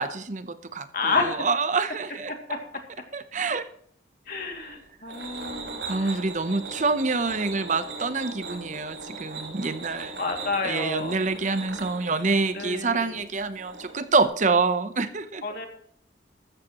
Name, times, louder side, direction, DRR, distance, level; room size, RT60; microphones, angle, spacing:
voice 1, 0.0-2.3 3.1-3.7 5.9-10.1 10.6-15.4, right 4 dB, 45° right, 12 dB, 0.8 m, -26 dB
voice 2, 0.9-1.5 2.5-2.6 4.3-6.2 6.5-6.6 10.2-11.2 12.5-13.2 15.4-15.7, left 3 dB, 50° left, 3 dB, 2.5 m, -30 dB
sound 1, 4.3-14.2, right 3 dB, 80° right, 5.9 m, -39 dB
14.0 x 14.0 x 3.0 m, 0.64 s
head